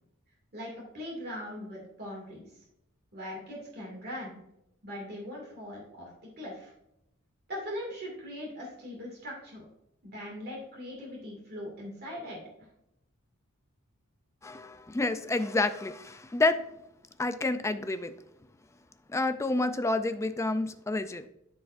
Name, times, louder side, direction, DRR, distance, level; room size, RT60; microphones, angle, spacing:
voice 1, 0.5-2.6 3.1-4.4 4.8-6.7 7.5-9.7 10.0-12.4, equal, 50° right, -3 dB, 2.2 m, -40 dB
voice 2, 14.4-16.6 17.2-18.1 19.1-21.2, left 2 dB, 15° left, 10 dB, 0.3 m, -29 dB
13.0 x 4.8 x 2.5 m, 0.81 s
head